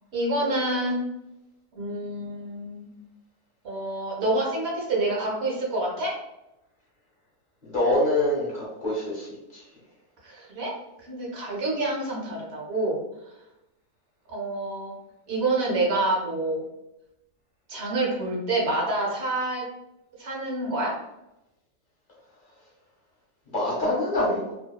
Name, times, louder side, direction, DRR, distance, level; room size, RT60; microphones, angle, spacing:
voice 1, 0.1-1.0 1.7-2.9 3.6-6.2 10.2-10.7 11.0-13.0 14.3-14.9 15.3-16.6 17.7-19.6 20.2-20.9, right 2 dB, 55° right, -3 dB, 0.8 m, -27 dB
voice 2, 7.6-9.3 23.5-24.5, left 1 dB, 50° left, -5 dB, 0.6 m, -25 dB
2.7 x 2.0 x 2.2 m, 0.90 s
omnidirectional pair, 1.7 m